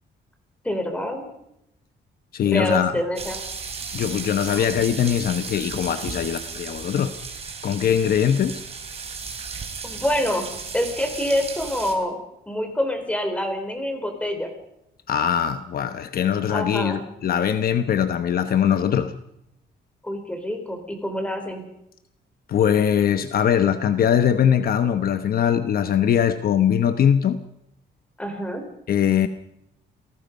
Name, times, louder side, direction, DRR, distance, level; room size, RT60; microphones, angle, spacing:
voice 1, 0.6-1.2 2.4-3.4 4.6-4.7 9.8-10.5 10.7-12.2 12.5-14.5 16.5-17.1 20.0-21.6 28.2-28.7, left 1 dB, 5° left, 5 dB, 4.2 m, -26 dB
voice 2, 2.3-2.9 3.9-7.1 7.6-8.6 15.1-19.1 22.5-27.4 28.9-29.3, left 9 dB, 55° left, 10 dB, 1.0 m, -21 dB
sound 1, 3.2-11.9, right 5 dB, 35° right, 3.7 m, -35 dB
28.5 x 18.5 x 5.3 m, 0.81 s
cardioid pair, 155°, 19 cm